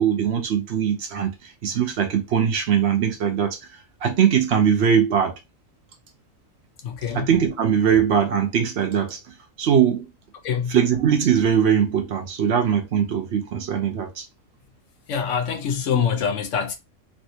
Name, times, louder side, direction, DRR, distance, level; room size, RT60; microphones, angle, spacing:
voice 1, 0.0-3.6 4.0-5.4 7.1-9.2 9.6-10.1 10.7-14.3, right 8 dB, 60° right, 0.8 m, -21 dB
voice 2, 6.8-7.3 10.4-10.8 15.1-16.7, left 7 dB, 70° left, 1.0 m, -24 dB
3.3 x 2.6 x 2.8 m
omnidirectional pair, 1.4 m